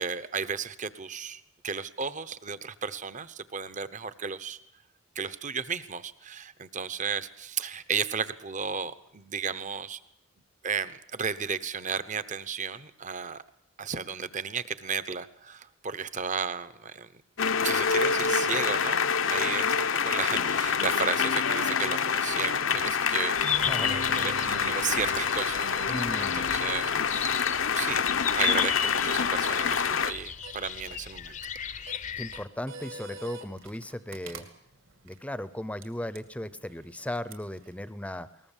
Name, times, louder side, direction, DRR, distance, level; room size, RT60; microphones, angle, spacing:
voice 1, 0.0-4.6 5.1-10.0 10.6-13.4 13.8-17.1 17.4-19.0 19.3-28.0 28.3-31.4, right 6 dB, 35° right, 14 dB, 0.9 m, -34 dB
sound 1, 17.4-30.1, left 6 dB, 65° left, 0.8 m, -27 dB
sound 2, 23.3-32.4, left 8 dB, 35° left, 0.7 m, -35 dB
sound 3, 23.5-37.9, right 4 dB, 65° right, 2.5 m, -48 dB
voice 2, 23.6-24.0 25.9-26.5 32.2-34.5 35.0-38.3, left 1 dB, 5° left, 14 dB, 0.7 m, -36 dB
21.5 x 19.5 x 7.4 m, 0.77 s
head